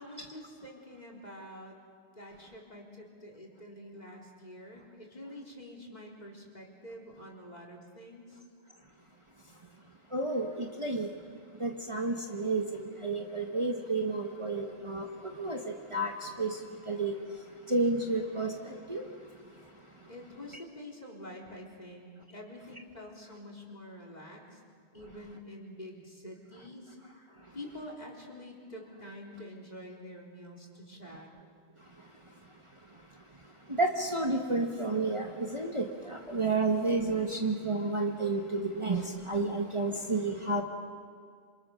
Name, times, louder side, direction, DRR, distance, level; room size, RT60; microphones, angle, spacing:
voice 1, 0.0-1.8 2.2-8.4 20.1-24.6 24.9-27.0 27.5-31.3, left 1 dB, 40° left, 0 dB, 4.0 m, -47 dB
voice 2, 10.1-11.1 11.6-12.6 13.0-15.0 15.4-15.6 15.9-16.1 16.4-16.5 16.9-17.1 17.7-18.5 18.9-19.0 33.8-35.3 35.5-35.8 36.3-39.0 39.3-40.6, right 3 dB, 25° right, 1 dB, 1.6 m, -30 dB
27.5 x 27.0 x 6.6 m, 2.1 s
omnidirectional pair, 1.1 m